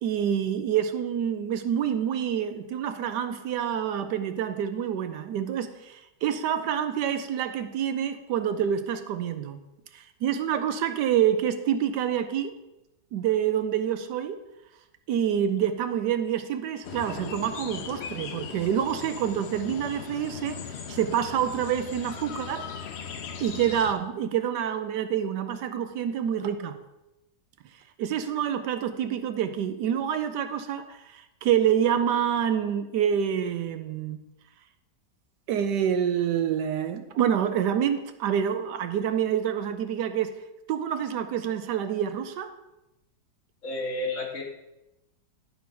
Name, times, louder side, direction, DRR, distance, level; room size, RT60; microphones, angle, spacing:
voice 1, 0.0-9.6 9.9-12.5 13.1-14.4 15.1-20.6 20.9-22.6 23.4-26.8 28.0-34.2 35.5-40.3 40.7-42.5, right 9 dB, 75° right, 9 dB, 1.2 m, -27 dB
sound 1, 16.8-23.9, left 6 dB, 65° left, 0.6 m, -39 dB
voice 2, 43.6-44.4, left 2 dB, 45° left, -1 dB, 1.8 m, -31 dB
11.0 x 4.3 x 5.6 m, 0.94 s
omnidirectional pair, 1.9 m